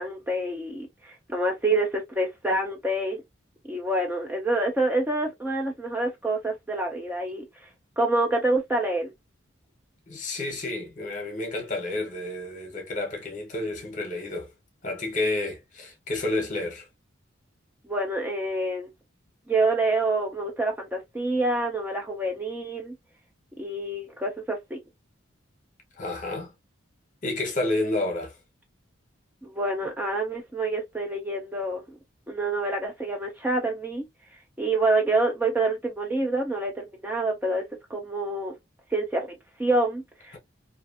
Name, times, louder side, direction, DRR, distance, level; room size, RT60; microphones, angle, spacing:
voice 1, 0.0-3.2 3.6-7.7 8.0-9.1 17.9-18.9 19.5-23.0 23.6-24.8 29.4-32.0 32.3-34.1 34.6-37.6 37.9-38.5 38.9-40.4, right 2 dB, 10° right, 0.4 m, -27 dB
voice 2, 10.1-14.5 14.8-16.9 26.0-26.5 27.2-28.3, left 2 dB, 40° left, 0.8 m, -30 dB
2.5 x 2.4 x 2.4 m
head